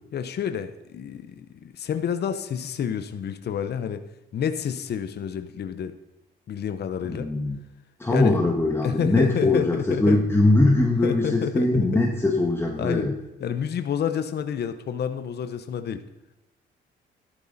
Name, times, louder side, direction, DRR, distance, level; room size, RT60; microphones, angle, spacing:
voice 1, 0.1-4.0 4.3-5.9 6.5-7.3 8.1-8.4 8.8-10.2 11.0-12.0 12.8-13.1 13.4-16.0, left 8 dB, 55° left, 9 dB, 0.9 m, -29 dB
voice 2, 7.1-7.6 8.0-13.1, left 2 dB, 10° left, 0 dB, 1.8 m, -21 dB
13.0 x 12.0 x 4.2 m, 0.99 s
cardioid pair, 90°, 20 cm